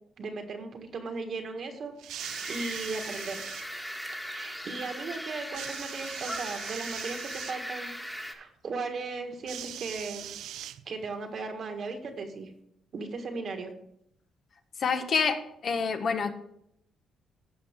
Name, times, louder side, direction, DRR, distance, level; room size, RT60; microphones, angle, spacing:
voice 1, 0.2-3.4 4.2-7.9 8.3-10.3 10.8-12.5 12.9-13.7, right 4 dB, 55° right, 5 dB, 1.6 m, -37 dB
sound 1, 2.0-3.7 5.5-7.6 9.5-11.2 12.1-12.2, right 11 dB, 85° right, 0.4 m, -41 dB
sound 2, 2.2-8.3, equal, 5° left, 1.5 m, -39 dB
voice 2, 14.8-16.3, left 5 dB, 55° left, 7 dB, 1.2 m, -27 dB
15.5 x 5.5 x 3.6 m, 0.74 s
cardioid pair, 90°, 0 cm